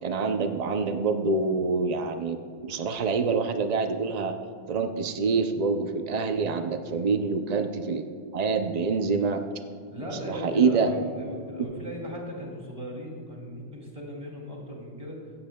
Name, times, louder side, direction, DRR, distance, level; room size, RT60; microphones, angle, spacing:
voice 1, 0.0-2.4 2.6-4.3 4.7-8.0 8.3-9.4 10.3-10.9, right 4 dB, 75° right, 7 dB, 0.3 m, -26 dB
voice 2, 9.9-15.2, equal, 25° right, -1 dB, 2.7 m, -37 dB
15.5 x 14.5 x 2.2 m, 2.3 s
omnidirectional pair, 1.5 m